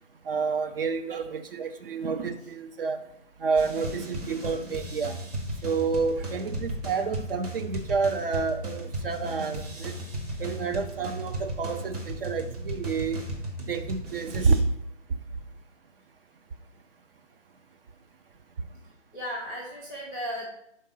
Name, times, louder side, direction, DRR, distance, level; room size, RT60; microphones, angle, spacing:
voice 1, 0.2-3.0 3.4-5.1 5.6-9.9 10.4-13.2 13.7-14.6, right 5 dB, 50° right, 8 dB, 0.6 m, -29 dB
sound 1, 3.5-14.6, right 1 dB, 30° right, 1.1 m, -35 dB
voice 2, 9.9-10.3 19.1-20.5, equal, 5° right, -4 dB, 0.5 m, -37 dB
5.2 x 3.8 x 5.2 m, 0.75 s
figure-of-eight pair, 140°, 37 cm